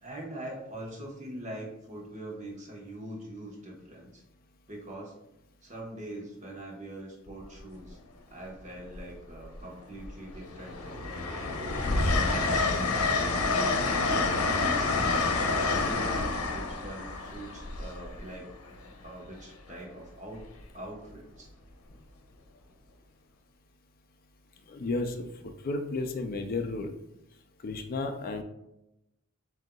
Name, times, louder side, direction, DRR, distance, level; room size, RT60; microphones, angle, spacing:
voice 1, 0.0-4.2 4.7-5.1 5.6-8.0 8.3-11.9 12.2-14.0 14.5-20.5 20.7-21.5, right 1 dB, 35° right, -2 dB, 1.2 m, -43 dB
Train, 7.3-7.6 8.9-9.6 10.0-18.8 20.4-20.6, left 3 dB, 85° left, 0.7 m, -28 dB
voice 2, 24.7-25.3 25.6-26.9 27.6-28.4, left 3 dB, 45° left, 6 dB, 0.4 m, -32 dB
7.6 x 2.7 x 2.3 m, 0.88 s
head